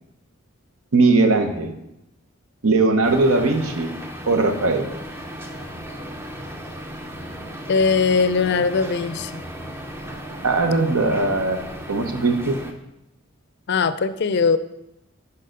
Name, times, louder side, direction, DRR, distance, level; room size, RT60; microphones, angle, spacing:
voice 1, 0.9-1.8 2.6-3.9 4.3-4.9 10.4-12.6, right 3 dB, 80° right, 6 dB, 0.9 m, -19 dB
sound 1, 3.0-12.7, equal, 10° right, 0.5 m, -35 dB
voice 2, 7.7-9.4 13.7-14.6, left 5 dB, 50° left, 13 dB, 0.4 m, -20 dB
6.5 x 5.7 x 5.1 m, 0.87 s
head